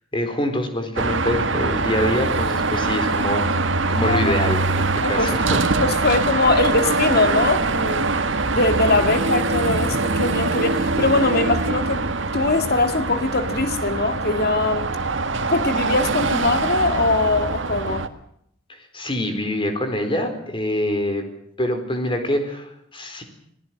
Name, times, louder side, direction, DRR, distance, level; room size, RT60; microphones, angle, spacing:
voice 1, 0.1-3.5 3.9-5.6 18.9-21.3 21.6-23.2, left 1 dB, 25° left, 4.3 m, -25 dB
Car passing by / Traffic noise roadway noise / Engine, 1.0-18.1, right 3 dB, 75° right, 1.7 m, -23 dB
voice 2, 4.0-4.4 5.0-5.3 5.8-8.1 8.5-12.1 12.3-14.9 15.4-18.1, left 3 dB, 55° left, 2.0 m, -22 dB
27.0 x 17.5 x 7.7 m
head